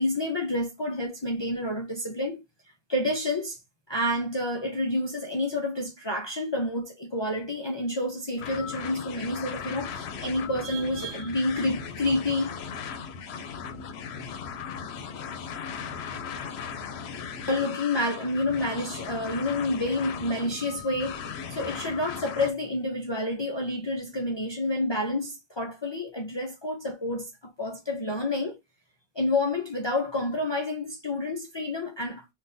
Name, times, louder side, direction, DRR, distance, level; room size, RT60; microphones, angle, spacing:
voice 1, 0.0-2.4 2.9-3.6 3.9-12.6 17.5-21.2 21.5-28.6 29.2-32.3, left 1 dB, 35° left, 0.5 m, -29 dB
sound 1, 8.4-22.5, left 6 dB, 80° left, 0.9 m, -37 dB
3.7 x 2.4 x 2.6 m
omnidirectional pair, 1.1 m